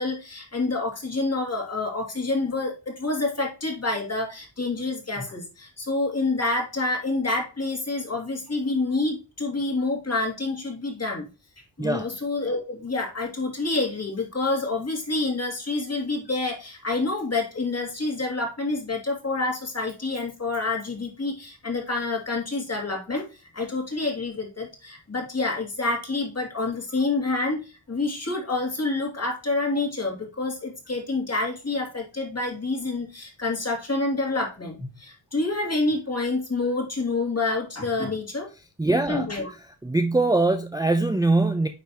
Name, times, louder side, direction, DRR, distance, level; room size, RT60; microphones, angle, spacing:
voice 1, 0.0-11.3 11.8-23.2 23.5-38.5 38.9-39.5, left 3 dB, 35° left, 2.5 m, -28 dB
voice 2, 38.8-39.3 39.8-41.7, right 2 dB, 10° right, 0.5 m, -22 dB
9.4 x 3.4 x 3.0 m
wide cardioid pair, 100°, 42 cm